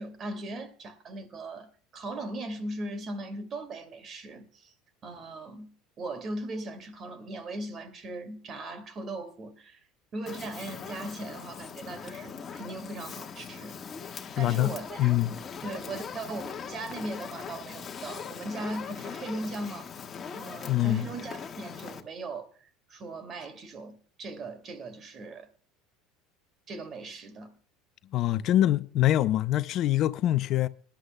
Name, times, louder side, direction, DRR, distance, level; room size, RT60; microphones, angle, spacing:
voice 1, 0.0-4.7 5.0-9.8 10.1-13.8 14.4-15.1 15.6-19.9 20.3-22.5 22.9-25.5 26.7-27.5, right 2 dB, 40° right, 2.3 m, -38 dB
Fire, 10.3-22.0, left 6 dB, 30° left, 1.4 m, -41 dB
voice 2, 14.3-14.7 15.0-15.3 20.7-21.0 28.1-30.7, left 14 dB, 55° left, 0.5 m, -24 dB
20.5 x 11.5 x 2.2 m
supercardioid pair, 105°, 0 cm